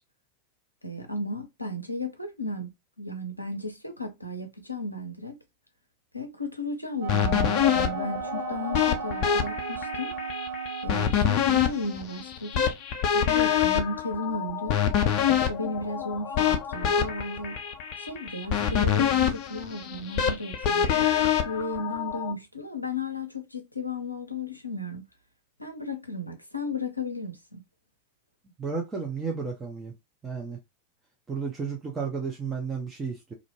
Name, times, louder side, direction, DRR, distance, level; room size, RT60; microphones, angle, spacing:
voice 1, 0.8-2.7 3.0-5.4 6.1-10.2 10.8-12.7 13.1-14.8 15.5-17.6 18.0-21.1 21.4-25.0 25.6-27.6, left 2 dB, 90° left, 0.5 m, -34 dB
Wind instrument woodwind instrument, 7.0-11.3, right 8 dB, 65° right, 0.4 m, -35 dB
sound 1, 7.1-22.3, left 9 dB, 40° left, 0.5 m, -26 dB
voice 2, 28.6-29.9 30.2-30.6 31.3-33.3, right 5 dB, 15° right, 0.6 m, -32 dB
2.5 x 2.1 x 2.9 m
figure-of-eight pair, 90°, 0 cm